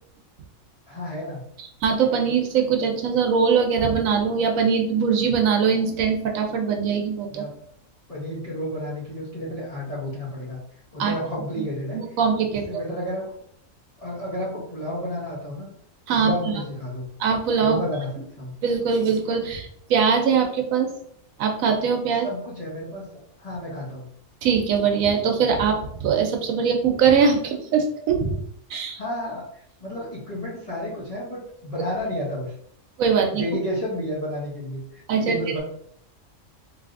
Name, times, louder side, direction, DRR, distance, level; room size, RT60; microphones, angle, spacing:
voice 1, 0.9-1.4 7.3-7.5 8.1-10.6 10.9-12.0 12.7-13.3 14.0-15.7 16.1-17.1 17.6-18.5 22.2-23.0 23.4-24.1 29.0-32.5 33.3-35.6, left 1 dB, 35° left, -6 dB, 0.7 m, -31 dB
voice 2, 1.8-7.5 11.0-11.1 11.6-11.7 11.9-12.6 16.1-16.3 17.2-17.8 18.6-20.9 21.4-22.3 24.4-28.4 28.7-29.0 33.0-33.4 35.1-35.4, right 6 dB, 80° right, 3 dB, 1.0 m, -22 dB
3.3 x 2.7 x 2.4 m, 0.68 s
omnidirectional pair, 1.4 m